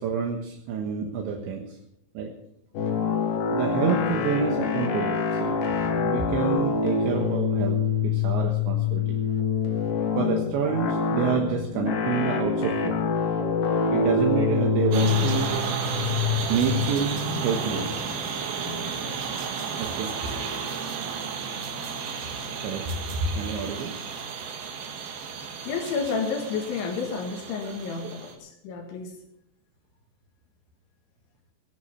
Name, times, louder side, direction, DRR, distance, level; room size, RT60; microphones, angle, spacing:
voice 1, 0.0-1.6 2.2-2.3 3.5-5.6 6.0-9.2 10.2-13.0 13.9-15.6 16.5-17.1 17.4-17.9 19.8-20.1 22.6-22.9 23.4-23.9 27.6-27.7 28.0-28.1, right 6 dB, 75° right, 2 dB, 3.6 m, -28 dB
sound 1, 2.7-19.3, left 5 dB, 55° left, 2.9 m, -26 dB
sound 2, 14.9-28.3, right 6 dB, 60° right, 3.2 m, -32 dB
voice 2, 25.7-29.1, left 5 dB, 80° left, 1 dB, 4.2 m, -30 dB
17.5 x 11.0 x 5.7 m, 0.76 s
omnidirectional pair, 5.4 m